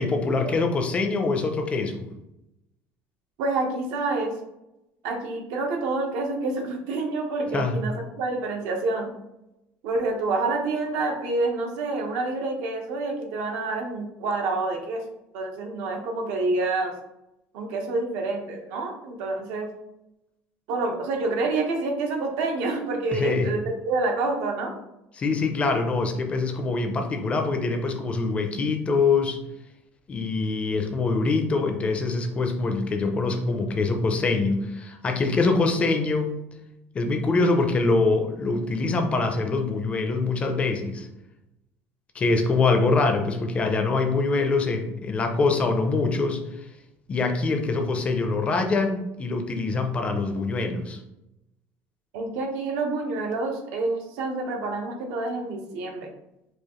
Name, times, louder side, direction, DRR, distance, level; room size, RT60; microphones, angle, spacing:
voice 1, 0.0-2.1 7.5-7.7 23.1-23.5 25.2-29.4 30.1-36.3 36.9-41.1 42.1-46.4 47.1-51.0, left 3 dB, 25° left, 6 dB, 0.4 m, -24 dB
voice 2, 3.4-4.3 5.0-9.1 9.8-15.0 15.3-16.9 17.5-19.7 20.7-24.7 52.1-56.1, right 3 dB, 80° right, 2 dB, 0.9 m, -28 dB
4.7 x 2.4 x 3.0 m, 0.88 s
cardioid pair, 150°, 5 cm